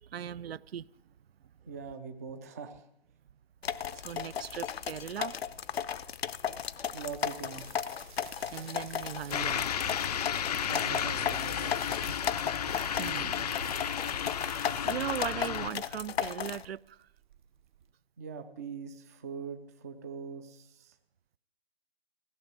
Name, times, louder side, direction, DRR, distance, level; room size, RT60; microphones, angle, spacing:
voice 1, 0.0-1.1 3.9-5.4 8.5-9.7 12.6-13.5 13.9-14.3 14.6-17.1, right 9 dB, 75° right, 0.5 m, -39 dB
voice 2, 1.7-2.9 6.9-7.7 10.7-12.2 18.2-21.0, right 5 dB, 15° right, 0.4 m, -42 dB
sound 1, 3.6-16.7, left 8 dB, 75° left, 0.7 m, -35 dB
sound 2, 6.9-17.9, right 8 dB, 50° right, 0.9 m, -53 dB
sound 3, 9.3-15.7, left 8 dB, 40° left, 0.4 m, -33 dB
16.0 x 6.5 x 9.4 m
hypercardioid pair, 150°, 31 cm